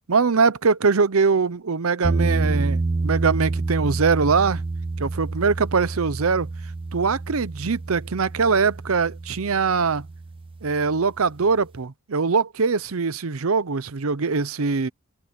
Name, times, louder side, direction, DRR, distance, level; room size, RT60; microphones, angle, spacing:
voice 1, 0.1-4.6 5.0-6.5 6.9-10.1 10.6-14.9, right 5 dB, 70° right, 0.7 m, -22 dB
sound 1, 2.0-11.0, right 3 dB, 25° right, 0.4 m, -28 dB
head